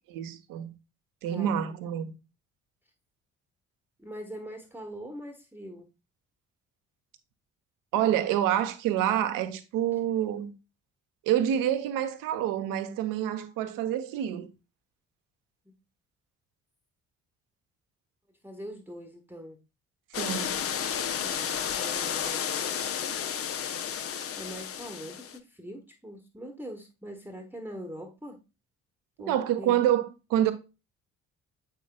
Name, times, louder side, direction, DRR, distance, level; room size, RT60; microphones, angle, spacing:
voice 1, 0.1-0.7 1.2-2.1 7.9-10.5 11.2-14.5 20.2-20.6 29.3-30.5, right 11 dB, 55° right, 0.9 m, -27 dB
voice 2, 1.3-1.6 4.0-5.9 15.6-15.7 18.4-19.6 21.2-22.5 24.4-28.4 29.2-29.7, equal, 5° right, 1.2 m, -42 dB
sound 1, 20.1-25.4, left 8 dB, 35° left, 0.8 m, -32 dB
8.2 x 5.7 x 2.2 m
figure-of-eight pair, 45°, 39 cm